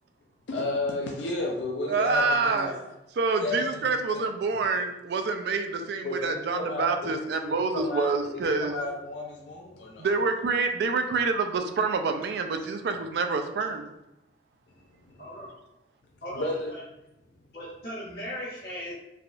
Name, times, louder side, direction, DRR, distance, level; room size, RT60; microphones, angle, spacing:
voice 1, 0.5-2.8 3.4-3.6 4.1-4.3 6.0-6.9 7.7-8.1 8.6-10.1 15.2-15.3 16.3-16.7, left 2 dB, 75° left, 0 dB, 0.4 m, -32 dB
voice 2, 1.9-2.8 3.1-8.8 10.0-13.9, right 4 dB, 60° right, 6 dB, 0.3 m, -27 dB
voice 3, 15.2-15.5 16.2-16.8 17.5-18.9, equal, 60° left, -8 dB, 1.4 m, -38 dB
3.4 x 2.3 x 2.5 m, 0.90 s
head